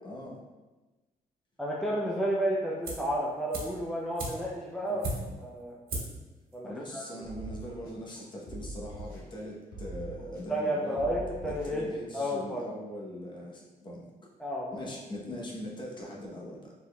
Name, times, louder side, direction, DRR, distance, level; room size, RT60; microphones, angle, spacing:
voice 1, 0.0-0.4 4.9-5.4 6.6-11.1 11.5-14.1 14.7-16.7, equal, 30° left, -3 dB, 0.9 m, -41 dB
voice 2, 1.6-5.0 5.4-5.8 6.5-7.0 10.5-11.8 12.1-12.7 14.4-14.8, equal, ahead, -4 dB, 0.5 m, -31 dB
sound 1, 2.8-3.2 3.5-5.5 5.9-6.3 6.5-6.6, right 2 dB, 75° right, 1.3 m, -37 dB
sound 2, 7.2-8.2 8.5-9.4 9.7-10.7 11.0-11.9, right 1 dB, 75° left, 1.1 m, -43 dB
5.0 x 4.1 x 2.3 m, 1.2 s
cardioid pair, 155°, 15 cm